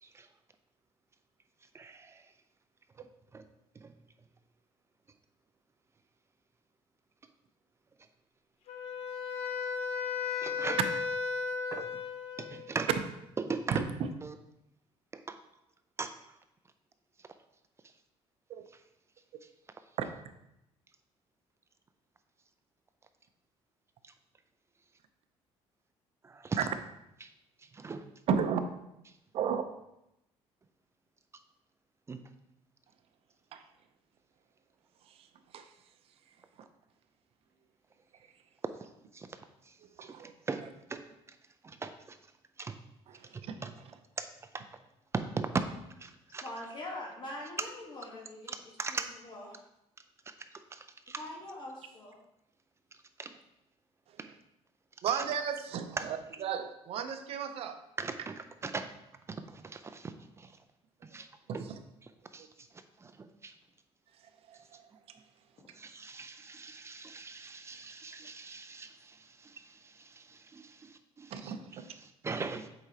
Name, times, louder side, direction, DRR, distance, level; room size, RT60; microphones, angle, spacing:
voice 1, 1.7-2.3 3.0-3.5 3.7-3.9 10.4-10.8 11.7-12.0 12.4-12.9 13.4-13.9 14.2-14.3 15.1-15.4 16.0-16.4 17.2-17.3 18.7-18.8 19.4-19.5 24.0-24.1 26.2-26.6 27.2-27.3 27.6-28.1 32.1-32.2 38.8-39.4 39.6-40.6 40.9-41.4 41.6-42.2 42.6-42.8 43.3-43.7 44.2-44.3 44.5-44.7 45.1-45.7 46.0-46.4 47.6-47.7 48.5-49.1 50.3-51.2 53.2-53.3 54.2-54.3 55.1-55.3 56.0-56.1 56.3-56.4 58.0-58.9 59.3-60.6 61.0-61.6 62.0-63.6 65.7-70.6 71.2-72.7, right 4 dB, 25° right, 9 dB, 0.5 m, -40 dB
Wind instrument woodwind instrument, 8.7-12.7, left 5 dB, 70° left, 0.8 m, -35 dB
voice 2, 28.3-28.6 29.3-29.6 33.5-33.6 35.5-35.6 40.0-40.3 43.5-43.6 55.0-57.8 61.5-61.6 64.5-64.6 71.3-71.9, right 7 dB, 60° right, 8 dB, 0.6 m, -33 dB
voice 3, 46.4-48.5 48.9-49.6 51.2-52.1, left 1 dB, 45° left, -1 dB, 1.4 m, -43 dB
7.7 x 4.9 x 2.9 m, 0.85 s
cardioid pair, 115°, 11 cm